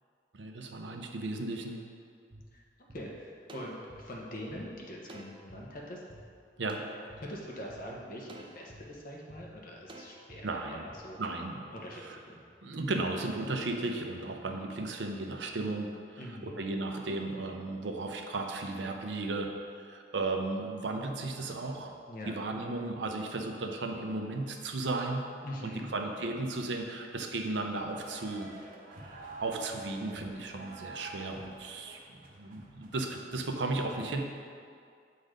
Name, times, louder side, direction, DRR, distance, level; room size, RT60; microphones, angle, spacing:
voice 1, 0.3-1.8 6.6-6.9 10.4-10.9 11.2-12.2 12.6-21.9 22.3-25.2 25.6-28.5 29.4-34.2, right 2 dB, 75° right, 3 dB, 0.7 m, -35 dB
sound 1, 2.3-2.4 2.9-3.0 3.5-4.6 5.1-5.6 6.1-6.2 6.7-7.2 7.7-7.8 8.3-8.8 9.3-9.4 9.9-10.4 10.9-11.0, right 1 dB, 30° right, 0.5 m, -50 dB
voice 2, 2.9-6.0 7.2-10.8 11.0-11.2 11.7-12.4 16.2-16.6 22.1-22.3 25.4-25.9 31.0-31.2, equal, 50° left, -2 dB, 1.1 m, -43 dB
sound 2, 27.9-33.0, right 2 dB, 50° right, 0.9 m, -48 dB
7.7 x 4.0 x 5.0 m, 2.3 s
head